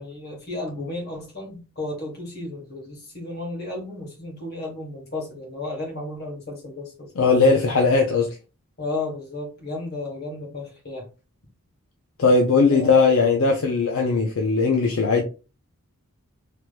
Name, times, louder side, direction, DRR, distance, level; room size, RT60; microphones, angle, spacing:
voice 1, 0.0-7.1 8.8-11.0 12.7-12.9, left 2 dB, 45° left, 1.2 m, -33 dB
voice 2, 7.2-8.4 12.2-15.2, left 4 dB, 65° left, 0.5 m, -19 dB
3.3 x 2.9 x 2.3 m
head